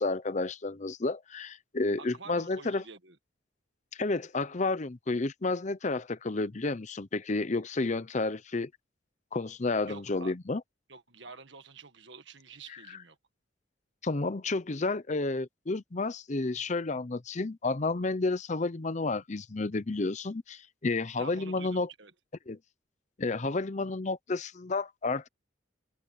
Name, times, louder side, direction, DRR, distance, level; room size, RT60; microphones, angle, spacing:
voice 1, 0.0-2.8 3.9-8.7 9.3-10.6 14.0-21.9 22.5-22.6 23.2-25.3, left 3 dB, 35° left, 0.7 m, -31 dB
voice 2, 2.0-3.2 9.8-10.4 10.9-13.2 21.2-22.1, right 4 dB, 65° right, 1.7 m, -48 dB
open air
head